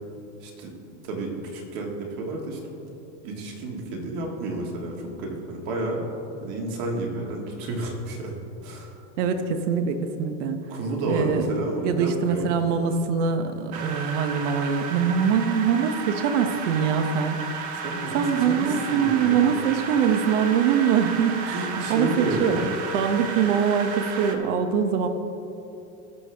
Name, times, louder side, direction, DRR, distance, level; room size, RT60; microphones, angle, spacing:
voice 1, 0.4-0.7 1.0-2.6 3.2-6.0 6.4-8.3 8.6-8.9 10.7-12.5 17.7-19.6 21.5-22.6, right 2 dB, 40° right, 0 dB, 1.8 m, -30 dB
voice 2, 9.2-10.6 11.1-11.5 11.8-17.8 18.1-25.1, right 7 dB, 65° right, 8 dB, 1.0 m, -23 dB
sound 1, 13.7-24.4, right 5 dB, 25° right, 0.4 m, -33 dB
17.5 x 6.6 x 3.4 m, 2.9 s
supercardioid pair, 170°, 39 cm